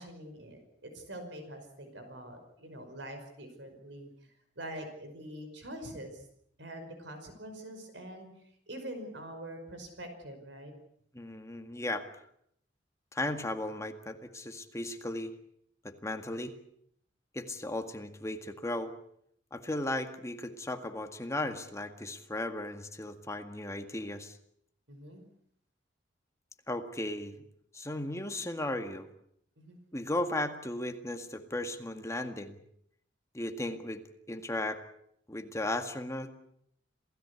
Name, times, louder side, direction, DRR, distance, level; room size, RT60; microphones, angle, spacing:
voice 1, 0.0-4.1 4.6-6.2 6.6-8.3 8.7-10.7 24.9-25.2 29.6-29.8, right 1 dB, 70° right, 6 dB, 5.4 m, -44 dB
voice 2, 11.1-12.1 13.1-15.3 15.8-16.5 17.3-18.9 19.5-24.4 26.7-27.4 27.7-29.1 29.9-32.6 33.3-34.0 34.3-34.8 35.3-36.3, left 1 dB, 15° left, 6 dB, 1.9 m, -36 dB
27.5 x 17.0 x 8.3 m, 0.70 s
head